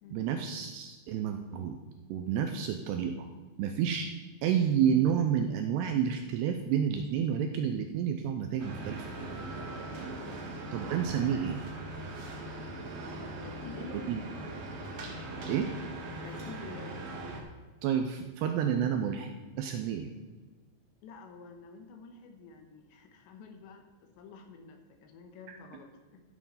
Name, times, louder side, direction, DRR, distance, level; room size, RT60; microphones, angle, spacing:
voice 1, 0.1-1.8 2.1-3.3 3.6-4.1 4.4-9.0 10.7-11.6 14.1-14.2 15.5-15.7 17.8-19.3 19.6-20.1 25.5-25.6, right 8 dB, 80° right, 6 dB, 2.5 m, -30 dB
sound 1, 8.6-17.4, right 2 dB, 55° right, 2.6 m, -40 dB
voice 2, 13.4-14.2 16.2-17.1 21.0-26.2, left 4 dB, 75° left, 5 dB, 3.2 m, -49 dB
13.5 x 7.0 x 5.5 m, 1.3 s
omnidirectional pair, 5.4 m